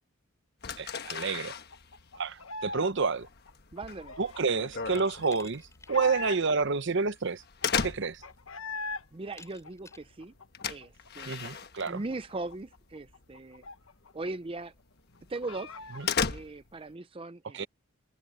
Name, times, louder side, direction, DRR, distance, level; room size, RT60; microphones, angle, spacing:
sound 1, 0.6-12.5 12.8-13.3 13.6-13.8 14.2-14.3 14.8-14.9 15.2-16.9, left 6 dB, 50° left, 1.3 m, -36 dB
voice 1, 0.8-1.5 2.2-3.3 4.2-5.6 5.9-7.4 7.8-8.2 11.3-12.0 16.0-16.1 17.5-17.7, right 4 dB, 55° right, 0.8 m, -29 dB
sound 2, 1.3-2.9 3.2-6.7 7.1-7.2 7.4-9.0 9.4-11.1 11.4-11.5 11.8-14.3 14.6-14.7 15.0-16.2, left 3 dB, 70° left, 1.3 m, -42 dB
voice 2, 3.7-4.1 9.1-10.3 10.7-11.5 11.9-13.6 14.1-14.7 15.3-15.7 16.3-17.7, right 2 dB, 25° right, 0.5 m, -39 dB
Glass, 4.9-6.0 6.4-6.5 7.6-7.7 8.1-8.6 9.3-10.1, left 3 dB, 15° left, 7.9 m, -53 dB
head